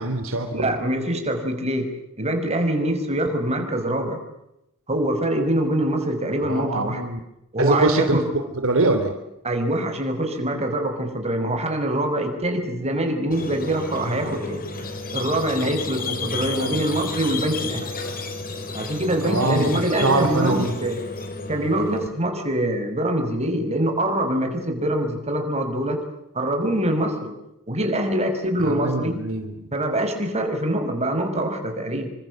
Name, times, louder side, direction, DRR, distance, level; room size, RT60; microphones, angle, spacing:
voice 1, 0.0-0.7 6.4-7.2 7.6-8.2 8.6-9.2 16.4-17.1 19.2-20.7 28.6-29.7, right 2 dB, 65° right, 7 dB, 3.1 m, -24 dB
voice 2, 0.5-1.9 2.2-4.2 4.9-7.0 7.5-8.3 9.4-14.6 15.1-17.9 18.7-21.0 21.5-26.0 26.3-27.3 27.7-29.2 29.7-32.1, right 1 dB, 30° right, 6 dB, 5.7 m, -24 dB
Squeak, 13.3-22.1, left 3 dB, 40° left, 5.0 m, -32 dB
27.5 x 25.5 x 7.6 m, 0.85 s
head